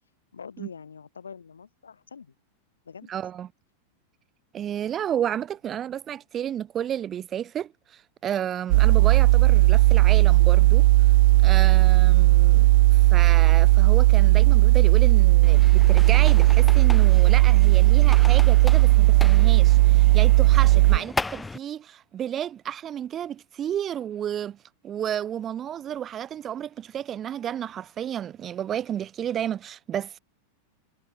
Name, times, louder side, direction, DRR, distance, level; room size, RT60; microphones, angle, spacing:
voice 1, 0.3-2.3 2.9-3.1 14.1-14.2 20.6-21.1, left 6 dB, 70° left, 6.3 m, -44 dB
voice 2, 3.1-3.5 4.5-10.9 11.4-24.6 24.8-30.2, right 10 dB, 25° right, 1.8 m, -32 dB
sound 1, 8.7-21.0, right 19 dB, 50° right, 0.4 m, -16 dB
sound 2, 15.4-21.6, left 3 dB, 10° left, 1.0 m, -36 dB
figure-of-eight pair, 90°, 0 cm